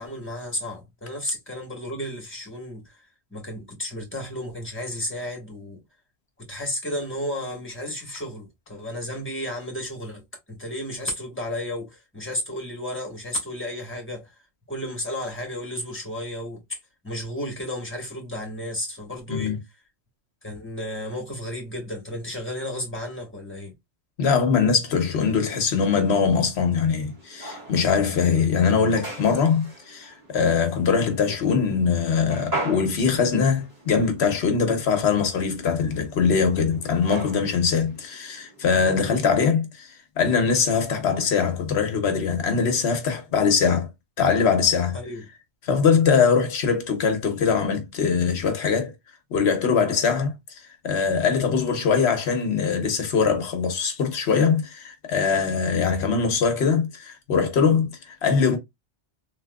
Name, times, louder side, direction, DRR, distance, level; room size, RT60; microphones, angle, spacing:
voice 1, 0.0-5.8 6.4-14.3 14.7-16.8 17.0-19.5 20.4-23.7 44.9-45.2, left 1 dB, 10° left, 1.4 m, -33 dB
voice 2, 24.2-43.9 44.2-45.0 45.6-48.9 49.3-58.6, left 6 dB, 70° left, 1.0 m, -22 dB
sound 1, 25.5-39.2, right 2 dB, 35° right, 1.7 m, -40 dB
3.5 x 2.8 x 2.2 m
omnidirectional pair, 1.2 m